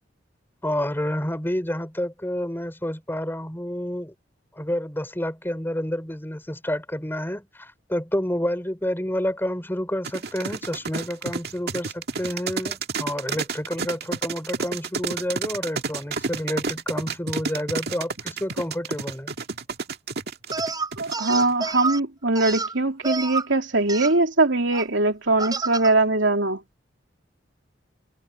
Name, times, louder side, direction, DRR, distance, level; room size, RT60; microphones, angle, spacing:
voice 1, 0.6-4.1 4.6-19.3, equal, 10° left, 4.1 m, -29 dB
sound 1, 10.0-21.5, right 4 dB, 60° right, 2.1 m, -30 dB
sound 2, 20.5-22.0 22.3-23.5 23.9-24.1 24.7-24.8 25.4-25.9, right 4 dB, 20° right, 6.2 m, -29 dB
voice 2, 21.0-26.6, right 2 dB, 75° right, 3.0 m, -21 dB
head